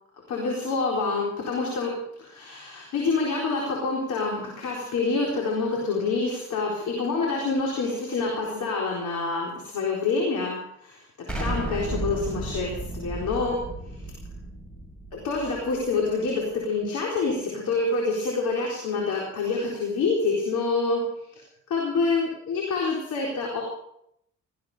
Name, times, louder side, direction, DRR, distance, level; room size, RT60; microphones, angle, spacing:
voice 1, 0.3-11.0 11.4-13.7 15.1-21.4 21.7-23.6, left 3 dB, 75° left, -2 dB, 4.1 m, -27 dB
Explosion, 11.3-16.1, right 2 dB, 5° left, 6.1 m, -34 dB
18.0 x 14.5 x 5.0 m, 0.75 s
cardioid pair, 90°, 30 cm